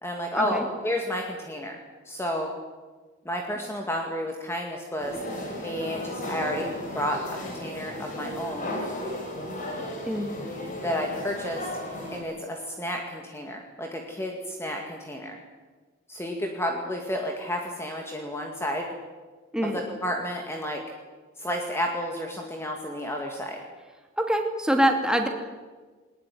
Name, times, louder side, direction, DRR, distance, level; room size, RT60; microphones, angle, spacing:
voice 1, 0.0-1.8 2.1-2.5 3.2-5.2 5.6-8.8 10.8-11.7 12.1-15.4 16.1-18.9 19.6-20.8 21.4-23.6, equal, 10° left, 2 dB, 2.2 m, -31 dB
sound 1, 5.0-12.2, left 1 dB, 40° left, 6.1 m, -35 dB
voice 2, 24.2-25.3, equal, 5° right, 4 dB, 2.7 m, -24 dB
20.5 x 20.0 x 9.5 m, 1.3 s
head